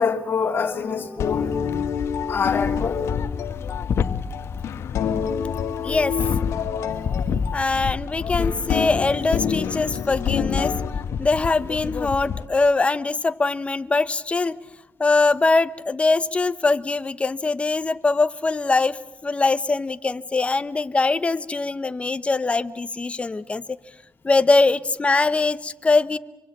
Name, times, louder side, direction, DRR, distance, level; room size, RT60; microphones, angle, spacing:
voice 1, 0.0-1.5 2.3-3.0, left 5 dB, 45° left, 3.2 m, -25 dB
sound 1, 0.7-10.9, left 7 dB, 85° left, 2.1 m, -28 dB
sound 2, 1.5-12.5, left 6 dB, 60° left, 1.3 m, -29 dB
voice 2, 5.8-6.2 7.5-10.7 11.2-14.6 15.0-23.6 24.2-26.2, left 3 dB, 25° left, 1.0 m, -22 dB
25.5 x 24.5 x 7.4 m
cardioid pair, 95°, 5 cm